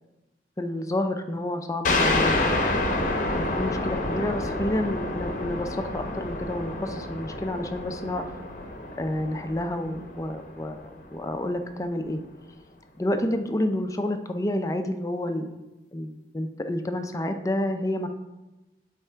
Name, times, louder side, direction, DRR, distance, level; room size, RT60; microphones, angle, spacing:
voice 1, 0.6-2.5 3.3-8.3 9.0-12.2 13.0-15.5 15.9-18.1, left 1 dB, 20° left, 7 dB, 0.4 m, -29 dB
sound 1, 1.8-11.1, left 2 dB, 45° left, 0.7 m, -28 dB
8.1 x 3.3 x 4.5 m, 1.0 s
head